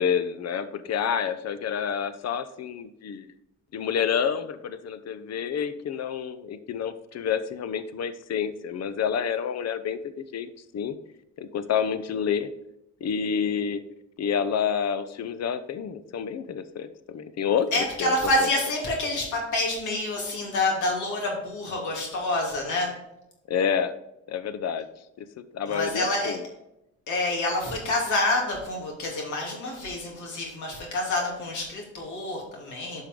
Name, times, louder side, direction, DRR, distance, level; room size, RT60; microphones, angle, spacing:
voice 1, 0.0-3.3 3.7-11.0 11.4-12.5 13.0-13.8 14.2-17.7 18.0-18.1 18.4-18.5 23.5-23.9 24.3-24.9 25.2-26.4, left 7 dB, 60° left, 12 dB, 0.8 m, -28 dB
voice 2, 17.7-22.9 25.7-26.4 27.1-33.0, left 2 dB, 75° left, -1 dB, 3.0 m, -27 dB
10.5 x 5.5 x 3.8 m, 0.86 s
cardioid pair, 90°, 30 cm